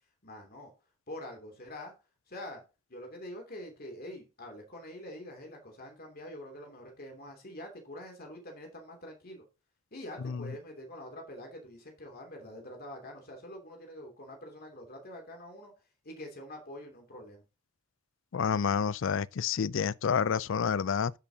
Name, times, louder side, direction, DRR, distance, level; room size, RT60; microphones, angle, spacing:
voice 1, 0.2-0.7 1.1-1.9 2.3-2.6 2.9-9.4 9.9-15.7 16.0-17.4, left 1 dB, 45° left, 2.8 m, -45 dB
voice 2, 18.3-21.1, left 6 dB, 65° left, 0.4 m, -29 dB
11.5 x 8.4 x 2.8 m
head